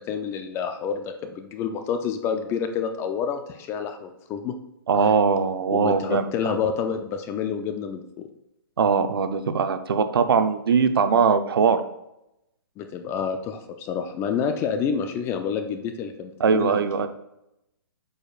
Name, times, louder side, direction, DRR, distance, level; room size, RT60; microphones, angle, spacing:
voice 1, 0.0-4.6 4.9-5.1 5.7-8.3 12.8-16.8, left 7 dB, 20° left, 7 dB, 0.5 m, -28 dB
voice 2, 4.9-6.3 8.8-11.8 16.4-17.1, right 5 dB, 75° right, 9 dB, 0.7 m, -21 dB
8.6 x 5.0 x 2.4 m, 0.87 s
hypercardioid pair, 145°, 12 cm